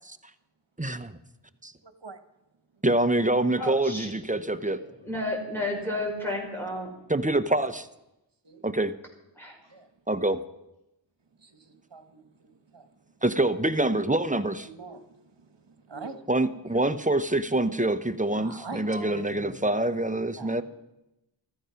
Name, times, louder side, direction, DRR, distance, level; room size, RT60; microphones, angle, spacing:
voice 1, 0.8-1.2 1.6-1.7 2.8-4.8 7.1-7.9 8.6-8.9 10.1-10.4 13.2-14.7 16.3-20.6, right 2 dB, 15° right, 11 dB, 0.8 m, -25 dB
voice 2, 3.6-4.1 5.0-6.9 9.4-9.6, left 1 dB, 5° left, -1 dB, 4.9 m, -31 dB
voice 3, 4.7-5.0 18.7-20.0 20.3-20.6, left 2 dB, 75° left, -6 dB, 4.4 m, -44 dB
voice 4, 11.9-12.9 14.6-15.0 15.9-16.2 16.7-16.8 18.3-18.8 20.0-20.1 20.4-20.5, right 4 dB, 65° right, 9 dB, 1.4 m, -42 dB
14.5 x 13.5 x 5.8 m, 0.91 s
wide cardioid pair, 45°, 46 cm